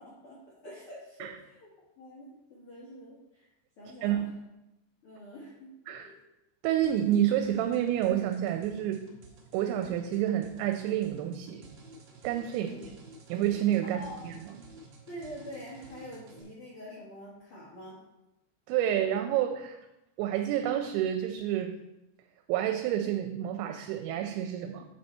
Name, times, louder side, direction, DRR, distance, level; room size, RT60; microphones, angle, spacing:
voice 1, 0.0-1.7 2.0-3.5 3.8-4.2 5.0-6.1 6.7-7.0 12.5-12.8 13.8-14.3 15.1-18.0, equal, 80° left, -6 dB, 1.2 m, -46 dB
voice 2, 6.6-9.1 9.5-11.6 12.2-12.7 13.3-14.6 18.7-19.8 20.2-21.7 22.5-24.9, right 11 dB, 85° right, 5 dB, 2.9 m, -29 dB
sound 1, 6.8-16.4, right 2 dB, 60° right, 2.2 m, -52 dB
9.0 x 4.2 x 4.3 m, 0.94 s
omnidirectional pair, 5.1 m